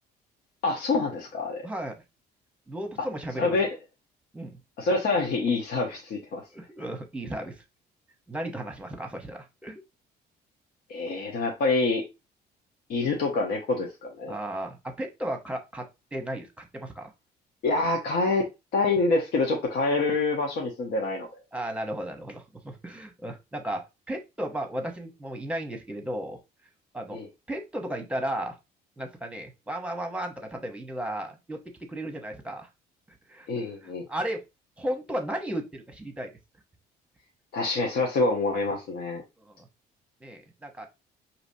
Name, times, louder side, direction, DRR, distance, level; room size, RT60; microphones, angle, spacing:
voice 1, 0.6-1.6 3.4-3.7 4.8-6.4 10.9-12.0 12.9-14.3 17.6-21.3 27.1-27.3 33.5-34.1 37.5-39.2, left 3 dB, 65° left, 1.0 m, -26 dB
voice 2, 1.6-2.0 2.7-3.6 4.3-4.6 6.5-7.6 8.3-9.8 14.3-17.1 21.5-26.4 26.9-27.2 27.5-28.6 29.0-32.7 33.1-33.5 33.8-34.4 34.8-36.3 39.4-39.7 40.2-40.9, right 1 dB, 5° right, 0.9 m, -35 dB
4.9 x 2.8 x 2.7 m
cardioid pair, 110°, 17 cm